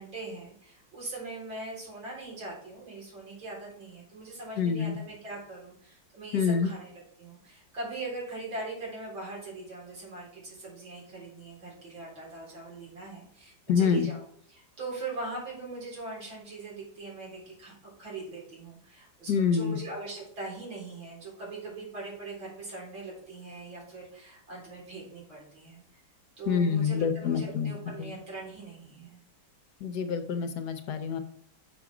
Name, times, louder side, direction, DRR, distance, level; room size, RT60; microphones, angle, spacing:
voice 1, 0.0-14.2 14.5-25.8 26.4-29.2, right 3 dB, 85° right, -4 dB, 4.5 m, -41 dB
voice 2, 4.6-5.0 6.3-6.7 13.7-14.1 19.3-19.8 26.5-27.7 28.0-28.1 29.8-31.2, left 6 dB, 65° left, 8 dB, 1.2 m, -26 dB
6.9 x 6.1 x 4.8 m, 0.65 s
omnidirectional pair, 2.1 m